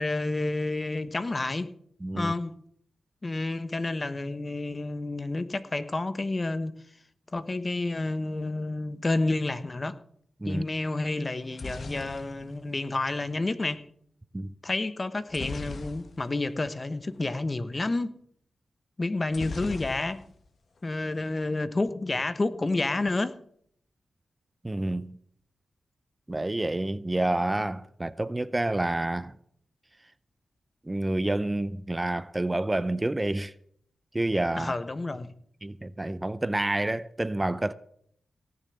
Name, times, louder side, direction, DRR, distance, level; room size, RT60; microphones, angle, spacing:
voice 1, 0.0-1.7 2.1-2.6 3.2-6.7 7.3-10.0 10.4-13.9 14.6-18.2 19.0-20.2 20.8-23.4 34.6-35.3, left 2 dB, 40° left, 1.1 m, -30 dB
voice 2, 2.0-2.3 10.4-10.6 14.3-14.5 24.6-25.2 26.3-29.3 30.9-33.5 34.1-34.7 35.6-37.7, right 1 dB, 25° right, 0.6 m, -28 dB
sound 1, 11.3-13.4 15.3-16.5 16.8-16.9 17.1-17.4 19.3-20.5 20.8-21.4, left 3 dB, 60° left, 1.3 m, -40 dB
17.5 x 6.9 x 7.8 m
cardioid pair, 45°, 0 cm